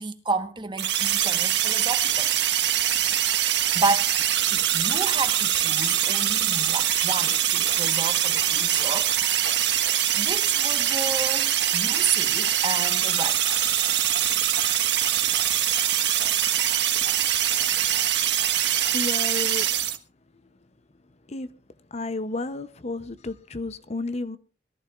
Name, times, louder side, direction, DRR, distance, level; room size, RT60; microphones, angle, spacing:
voice 1, 0.0-2.3 3.3-4.1 4.5-9.1 10.1-13.4, right 3 dB, 25° right, 1.2 m, -31 dB
sound 1, 0.8-20.0, right 11 dB, 70° right, 1.4 m, -23 dB
sound 2, 5.4-18.9, left 4 dB, 75° left, 3.3 m, -43 dB
voice 2, 18.7-19.7 21.3-21.5 21.9-24.4, left 2 dB, 35° left, 0.7 m, -32 dB
22.0 x 14.5 x 2.4 m
head